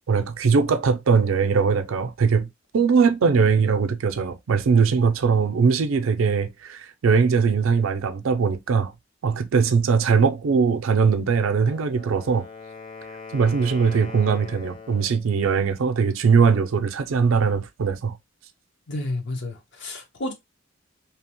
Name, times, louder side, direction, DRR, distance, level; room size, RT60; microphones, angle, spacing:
voice 1, 0.1-2.5 2.7-8.9 9.2-12.4 13.3-18.2, right 5 dB, 75° right, 0.4 m, -21 dB
Wind instrument woodwind instrument, 11.5-15.3, left 4 dB, 25° left, 0.6 m, -41 dB
voice 2, 18.9-20.3, left 1 dB, 60° left, 0.7 m, -31 dB
2.8 x 2.0 x 2.8 m
head